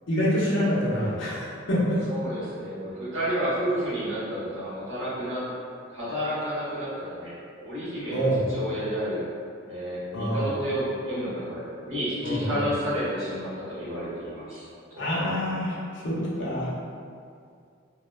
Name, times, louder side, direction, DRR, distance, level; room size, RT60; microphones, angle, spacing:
voice 1, 0.1-2.0 8.1-8.4 10.1-10.5 12.2-12.6 15.0-16.7, equal, 65° left, -7 dB, 0.7 m, -26 dB
voice 2, 2.1-5.4 5.9-7.3 7.6-9.2 9.7-14.6 14.9-15.0, equal, 75° right, -9 dB, 1.0 m, -30 dB
2.9 x 2.1 x 2.2 m, 2.3 s
head